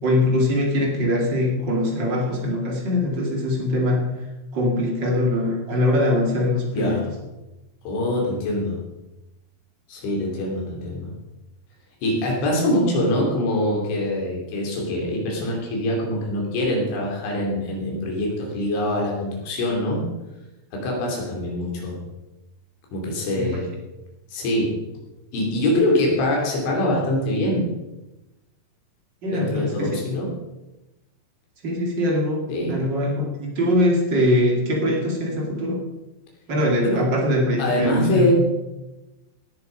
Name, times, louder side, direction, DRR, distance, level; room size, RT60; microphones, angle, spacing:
voice 1, 0.0-4.1 4.5-7.0 23.3-23.6 29.2-30.0 31.6-32.4 32.7-35.8 36.5-38.3, left 1 dB, 40° right, -1 dB, 1.6 m, -22 dB
voice 2, 6.7-7.1 7.9-8.8 9.9-11.2 12.0-20.2 20.7-22.1 22.9-23.7 24.3-24.9 25.3-27.8 29.3-30.4 32.5-32.8 36.8-37.1 37.6-38.3, left 1 dB, 70° left, -1 dB, 5.3 m, -24 dB
18.5 x 7.1 x 5.2 m, 1.0 s
omnidirectional pair, 5.6 m